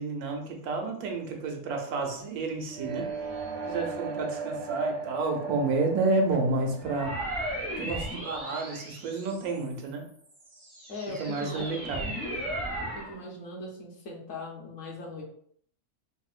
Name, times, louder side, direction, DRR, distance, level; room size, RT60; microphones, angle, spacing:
voice 1, 0.0-3.1 3.6-7.1 7.8-10.0 11.2-12.1, right 3 dB, 85° right, 3 dB, 1.2 m, -30 dB
sound 1, 2.7-8.6, right 4 dB, 65° right, 0.7 m, -38 dB
sound 2, 6.8-9.7 10.3-13.2, right 1 dB, 40° right, 0.4 m, -36 dB
voice 2, 10.9-12.5 12.8-15.2, left 2 dB, 65° left, -2 dB, 1.1 m, -40 dB
4.3 x 2.1 x 2.4 m, 0.63 s
omnidirectional pair, 1.6 m